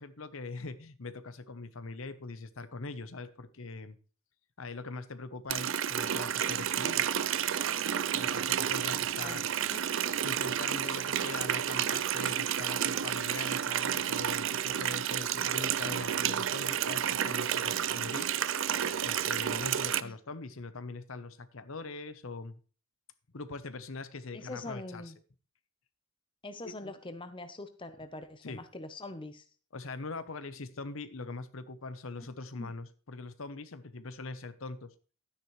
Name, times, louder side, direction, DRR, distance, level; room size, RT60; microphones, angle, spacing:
voice 1, 0.0-4.0 4.6-7.1 8.1-9.5 10.2-18.3 19.0-22.6 23.3-25.1 26.6-27.0 28.4-28.6 29.7-34.9, left 3 dB, 65° left, 12 dB, 0.9 m, -42 dB
Water tap faucet, 5.5-20.0, right 9 dB, 60° right, 0.5 m, -31 dB
voice 2, 24.3-25.2 26.4-29.4 32.6-32.7, left 2 dB, 20° left, 9 dB, 0.7 m, -43 dB
12.0 x 9.9 x 3.1 m, 0.38 s
head